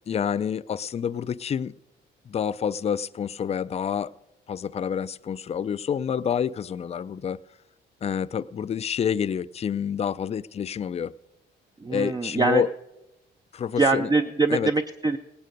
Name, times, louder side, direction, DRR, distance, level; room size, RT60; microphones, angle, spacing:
voice 1, 0.1-1.7 2.3-4.1 4.5-7.4 8.0-11.1 11.9-12.7 13.5-14.1 14.5-14.7, left 8 dB, 35° left, 0.4 m, -28 dB
voice 2, 11.8-12.6 13.8-15.2, right 3 dB, 20° right, 0.5 m, -23 dB
18.0 x 9.1 x 5.2 m
cardioid pair, 90°, 20 cm